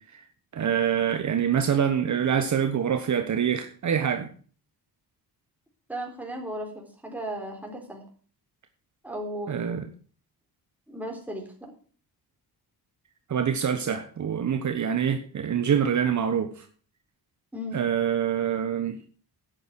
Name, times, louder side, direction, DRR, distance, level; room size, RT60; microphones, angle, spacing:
voice 1, 0.5-4.3 9.5-9.8 13.3-16.7 17.7-19.0, right 8 dB, 45° right, 7 dB, 1.1 m, -25 dB
voice 2, 5.9-8.0 9.0-9.6 10.9-11.7 17.5-17.8, right 1 dB, 5° right, 0 dB, 3.9 m, -35 dB
11.5 x 8.7 x 6.2 m, 0.43 s
wide cardioid pair, 150°, 39 cm